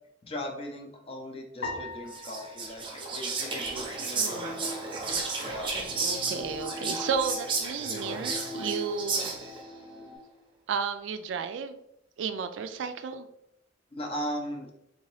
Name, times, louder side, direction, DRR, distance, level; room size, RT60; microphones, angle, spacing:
voice 1, 0.2-4.9 5.4-5.7 13.9-14.7, equal, 30° left, 3 dB, 0.5 m, -38 dB
sound 1, 1.6-4.1, left 3 dB, 75° left, 0.8 m, -42 dB
Whispering, 2.1-9.6, right 4 dB, 25° right, 0.6 m, -33 dB
sound 2, 3.4-10.2, left 1 dB, 5° left, 0.8 m, -42 dB
voice 2, 4.1-4.6 6.0-9.3 10.7-11.8 12.2-13.3, right 6 dB, 65° right, 10 dB, 0.3 m, -33 dB
3.7 x 2.8 x 3.0 m, 0.79 s
head